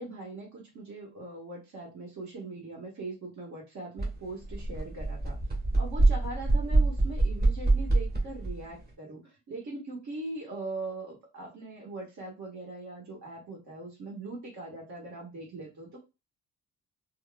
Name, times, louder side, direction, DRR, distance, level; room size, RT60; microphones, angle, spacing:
voice 1, 0.0-5.4 5.7-16.0, right 2 dB, 65° right, -2 dB, 1.5 m, -41 dB
sound 1, 4.0-4.1 4.4-8.6, right 2 dB, 30° right, 1.4 m, -25 dB
3.6 x 2.3 x 2.2 m, 0.26 s
cardioid pair, 90°, 30 cm